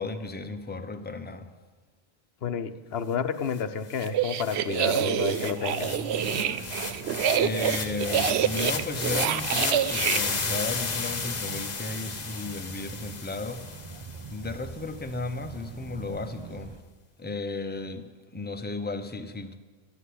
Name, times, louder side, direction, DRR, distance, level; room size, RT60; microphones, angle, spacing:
voice 1, 0.0-1.5 7.4-16.9 17.2-19.6, left 3 dB, 10° left, 0.7 m, -35 dB
voice 2, 2.4-5.9, left 7 dB, 70° left, 1.0 m, -30 dB
sound 1, 3.6-3.7 3.9-14.3, left 4 dB, 45° left, 1.0 m, -33 dB
sound 2, 4.0-10.2, right 9 dB, 80° right, 0.9 m, -27 dB
sound 3, 5.6-16.8, right 4 dB, 30° right, 0.7 m, -42 dB
12.5 x 9.7 x 8.4 m
omnidirectional pair, 1.1 m